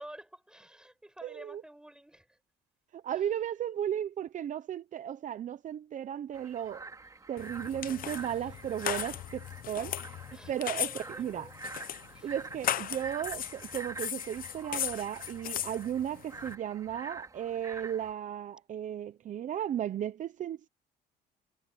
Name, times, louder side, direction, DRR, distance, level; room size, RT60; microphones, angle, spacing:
voice 1, 0.0-2.4 3.1-3.3 8.0-8.6 10.3-11.6 12.1-12.3, right 1 dB, 5° right, 5.6 m, -51 dB
voice 2, 1.2-1.6 2.9-6.8 7.3-9.9 10.3-10.9 11.2-11.5 12.2-20.7, right 10 dB, 50° right, 0.8 m, -35 dB
sound 1, 6.3-18.1, right 3 dB, 20° right, 4.4 m, -46 dB
sound 2, 7.4-16.5, left 11 dB, 55° left, 0.9 m, -38 dB
cardioid pair, 110°, 17 cm